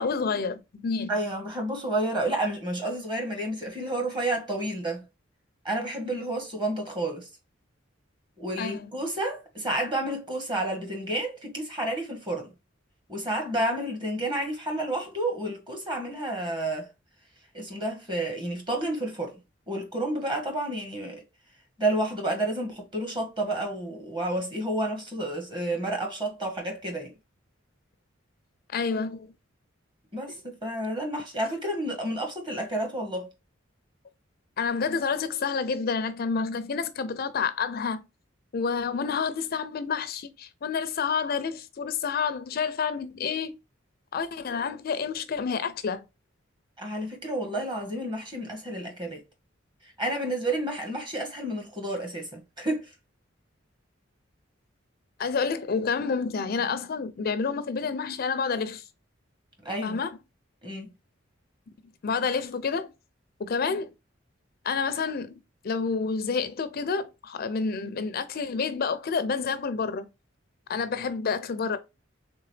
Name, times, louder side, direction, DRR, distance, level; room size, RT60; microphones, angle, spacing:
voice 1, 0.0-1.1 8.6-8.8 28.7-29.3 34.6-38.0 38.5-43.5 44.1-46.0 55.2-58.8 59.8-60.1 62.0-62.9 63.4-63.9 64.6-70.1 70.7-71.8, left 5 dB, 50° left, 0.4 m, -29 dB
voice 2, 1.1-5.0 5.6-7.3 8.4-12.5 13.1-16.9 17.5-19.3 19.7-21.2 21.8-27.1 30.1-33.3 46.8-49.2 50.0-52.9 59.6-60.0 60.6-60.9, right 1 dB, 25° right, 1.2 m, -30 dB
3.8 x 3.6 x 3.2 m
head